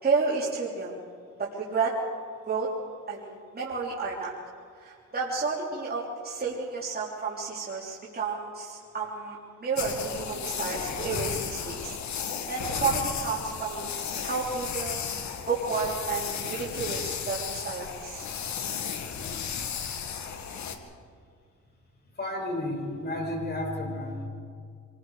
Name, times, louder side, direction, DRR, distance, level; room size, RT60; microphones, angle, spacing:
voice 1, 0.0-1.0 1.4-1.9 2.4-2.7 3.1-4.3 4.8-12.0 12.5-13.9 14.2-15.0 15.5-18.3, right 4 dB, 30° right, -5 dB, 3.6 m, -31 dB
sound 1, 9.8-20.8, left 7 dB, 70° left, 2.1 m, -34 dB
voice 2, 22.2-24.3, left 1 dB, 35° left, 0 dB, 6.8 m, -32 dB
26.5 x 21.5 x 5.0 m, 2.2 s
cardioid pair, 90°, 30 cm